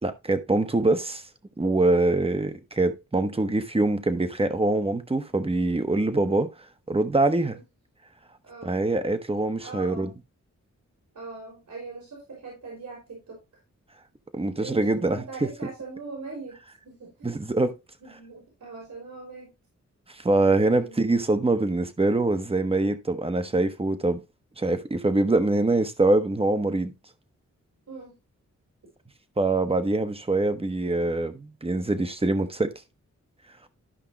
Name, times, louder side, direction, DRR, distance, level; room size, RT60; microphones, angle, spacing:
voice 1, 0.0-1.2 1.6-6.5 6.9-7.6 8.6-10.1 14.3-15.2 17.2-17.8 20.1-24.2 24.6-26.9 29.4-32.7, right 2 dB, 20° right, 1.2 m, -24 dB
voice 2, 8.4-8.8 9.6-10.1 11.1-13.4 14.4-16.6 16.8-17.4 18.0-19.5 20.6-21.0 27.9-28.2, right 3 dB, 75° right, 4.7 m, -41 dB
13.0 x 5.5 x 2.9 m
wide cardioid pair, 85°, 29 cm